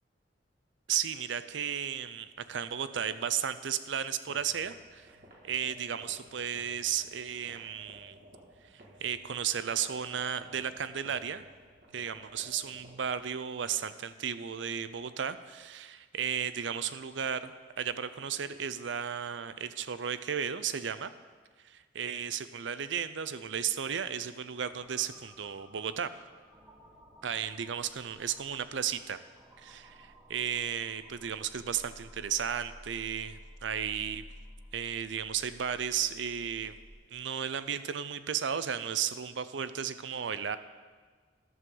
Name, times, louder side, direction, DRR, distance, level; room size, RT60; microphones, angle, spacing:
voice 1, 0.9-5.1 5.4-8.2 9.0-11.4 11.9-21.1 21.6-26.1 27.2-29.2 29.6-34.2 34.7-36.8 37.1-40.6, right 8 dB, 80° right, 13 dB, 0.5 m, -34 dB
sound 1, 4.2-13.2, equal, 50° right, 2.1 m, -56 dB
sound 2, 24.7-36.9, equal, 10° right, 1.2 m, -54 dB
13.5 x 11.0 x 3.9 m, 1.5 s
head